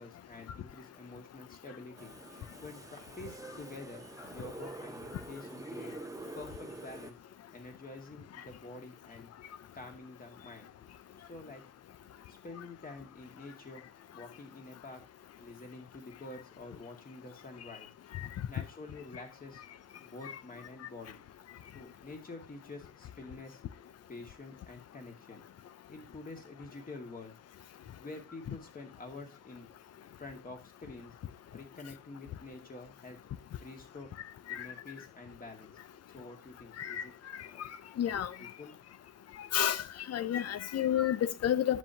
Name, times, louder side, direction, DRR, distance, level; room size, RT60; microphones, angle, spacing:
voice 1, 0.0-2.1 2.6-5.9 6.4-7.2 7.5-9.3 9.7-10.7 11.2-11.6 12.3-13.8 14.1-15.0 15.4-17.9 18.5-21.2 21.7-23.6 24.1-25.4 25.9-27.3 28.0-29.7 30.2-31.1 31.5-33.2 33.6-34.1 34.5-35.7 36.1-37.1 37.4-37.6 38.4-38.7, left 3 dB, 30° left, 2.1 m, -48 dB
sound 1, 2.0-7.1, right 2 dB, 10° right, 0.8 m, -46 dB
voice 2, 38.0-38.3 39.5-41.8, left 10 dB, 55° left, 0.7 m, -30 dB
10.5 x 7.5 x 2.8 m
cardioid pair, 90°, 30 cm